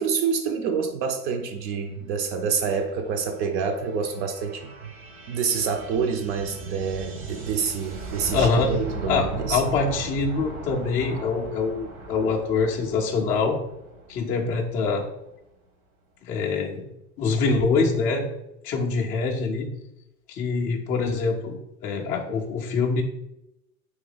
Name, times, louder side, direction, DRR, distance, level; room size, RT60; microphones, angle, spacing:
voice 1, 0.0-4.9 5.3-9.6, right 6 dB, 55° right, 5 dB, 0.6 m, -27 dB
sound 1, 1.9-15.3, right 2 dB, 70° right, 1.2 m, -39 dB
voice 2, 8.3-8.7 9.1-13.6 14.1-15.1 16.2-16.8 17.2-18.3 18.6-19.7 20.3-23.0, left 4 dB, 20° left, -1 dB, 0.3 m, -24 dB
3.0 x 2.7 x 3.9 m, 0.86 s
hypercardioid pair, 95°, 44 cm